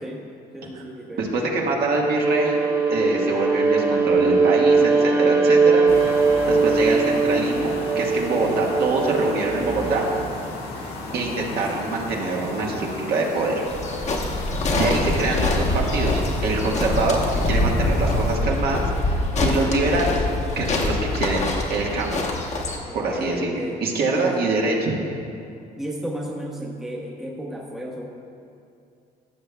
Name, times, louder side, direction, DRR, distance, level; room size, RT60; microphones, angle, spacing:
voice 1, 0.5-1.3 22.9-24.5 25.8-28.1, right 1 dB, 5° right, -2 dB, 0.9 m, -33 dB
voice 2, 1.2-2.6 2.9-5.9 6.5-10.1 11.1-13.6 14.8-20.2 20.5-22.2 22.9-24.9, right 2 dB, 65° right, -2 dB, 1.5 m, -24 dB
Bowed string instrument, 1.9-10.3, right 4 dB, 20° right, 1.4 m, -21 dB
sound 1, 5.9-18.4, left 2 dB, 80° left, 1.3 m, -35 dB
sound 2, 13.7-22.8, left 2 dB, 40° left, 1.1 m, -24 dB
15.5 x 6.7 x 2.3 m, 2.5 s
cardioid pair, 110°, 17 cm